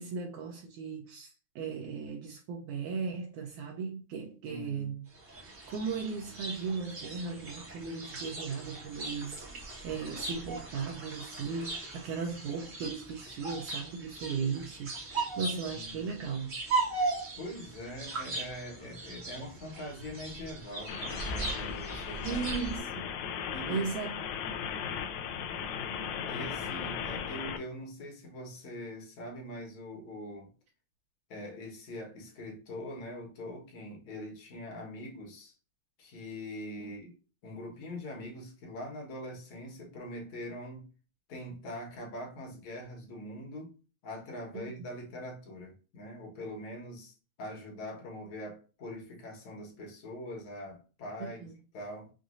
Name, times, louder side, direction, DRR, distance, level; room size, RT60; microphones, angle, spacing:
voice 1, 0.0-5.1 5.7-9.4 9.8-16.6 22.2-23.0 23.7-24.2 36.8-36.9 44.5-44.7 51.2-51.6, right 5 dB, 80° right, 2.0 m, -37 dB
voice 2, 4.4-4.9 15.4-16.1 17.4-22.4 23.5-23.9 26.3-30.5 31.3-35.5 36.0-37.1 37.4-40.9 41.3-43.8 44.0-47.1 47.4-51.5 51.7-52.1, left 1 dB, 60° left, 2.3 m, -43 dB
sound 1, 5.2-22.8, right 3 dB, 55° right, 0.8 m, -38 dB
sound 2, 20.9-27.6, left 7 dB, 80° left, 1.6 m, -37 dB
6.1 x 2.6 x 2.5 m
omnidirectional pair, 3.9 m